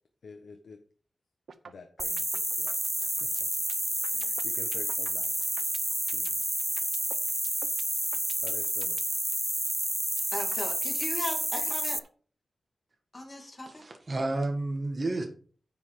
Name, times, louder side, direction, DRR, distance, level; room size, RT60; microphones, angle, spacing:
voice 1, 0.2-0.8 1.6-3.5 4.1-5.5 6.1-6.4 8.4-9.0, left 4 dB, 70° left, 3 dB, 1.1 m, -48 dB
sound 1, 1.5-1.7 2.0-12.1, right 5 dB, 90° right, 0.8 m, -48 dB
sound 2, 2.0-12.0, right 1 dB, 5° right, 0.4 m, -30 dB
voice 2, 10.3-12.0 13.1-13.8, left 1 dB, 25° left, 1 dB, 2.5 m, -37 dB
voice 3, 13.7-15.3, right 2 dB, 35° right, 3 dB, 1.8 m, -31 dB
9.8 x 5.6 x 4.9 m, 0.43 s
wide cardioid pair, 165°, 0 cm